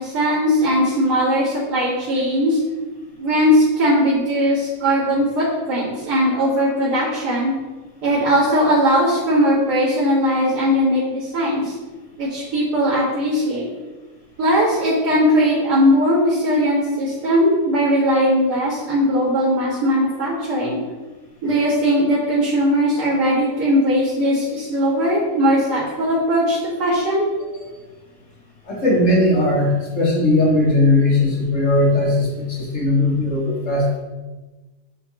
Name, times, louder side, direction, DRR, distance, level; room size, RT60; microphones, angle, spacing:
voice 1, 0.0-2.6 3.2-7.5 8.0-11.7 12.2-13.7 14.4-20.8 21.4-27.2, equal, 85° right, -12 dB, 3.3 m, -19 dB
voice 2, 28.7-34.0, left 2 dB, 50° left, -4 dB, 2.4 m, -18 dB
10.0 x 3.6 x 4.3 m, 1.2 s
omnidirectional pair, 1.7 m